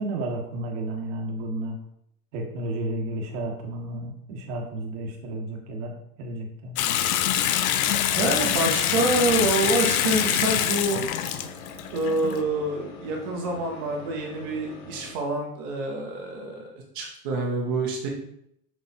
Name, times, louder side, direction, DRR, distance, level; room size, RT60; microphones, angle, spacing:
voice 1, 0.0-1.8 2.3-5.9 6.2-6.7, right 1 dB, 45° right, 1 dB, 1.5 m, -32 dB
Water tap faucet / Sink (filling or washing) / Bathtub (filling or washing), 6.8-12.4, left 10 dB, 60° left, 0.7 m, -25 dB
sound 1, 8.1-15.1, left 2 dB, 40° left, 1.4 m, -44 dB
voice 2, 8.2-11.0 11.9-18.1, right 2 dB, 15° right, 0 dB, 0.4 m, -27 dB
6.9 x 6.0 x 2.6 m, 0.74 s
supercardioid pair, 170°, 47 cm